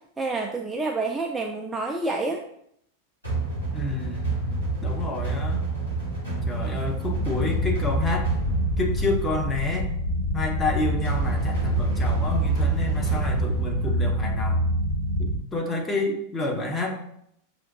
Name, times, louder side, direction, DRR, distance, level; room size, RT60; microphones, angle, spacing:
voice 1, 0.2-2.4, right 3 dB, 10° right, 0 dB, 0.3 m, -28 dB
sound 1, 3.2-15.1, right 4 dB, 85° left, 1.6 m, -29 dB
voice 2, 3.7-4.4 4.8-5.6 6.5-8.3 8.8-9.9 10.3-14.7 15.2-17.0, left 2 dB, 15° left, 1 dB, 0.8 m, -29 dB
sound 2, 7.1-15.4, left 1 dB, 40° left, 1.0 m, -27 dB
6.0 x 2.5 x 2.6 m, 0.71 s
figure-of-eight pair, 90°, 0 cm